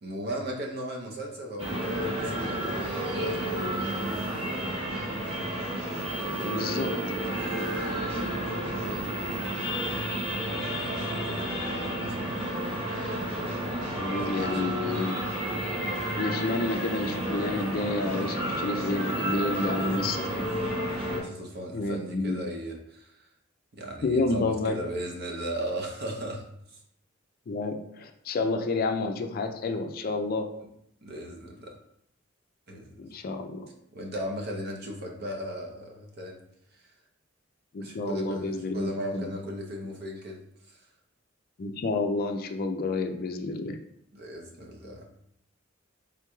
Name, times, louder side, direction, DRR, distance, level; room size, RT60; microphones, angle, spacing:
voice 1, 0.0-4.3 10.8-12.4 14.1-14.7 19.5-20.5 21.0-23.3 23.7-26.8 31.0-31.8 32.7-33.1 33.9-36.4 36.7-36.9 37.8-40.9 44.1-45.1, equal, 55° right, 1 dB, 0.7 m, -37 dB
sound 1, 1.6-21.2, right 1 dB, 30° right, 1.2 m, -31 dB
voice 2, 6.4-6.9 14.0-15.2 16.2-20.4 21.7-22.3 24.0-24.8 27.5-30.5 33.0-33.7 37.7-39.3 41.6-43.8, left 3 dB, 50° left, 6 dB, 0.4 m, -30 dB
4.5 x 3.6 x 2.3 m, 0.77 s
head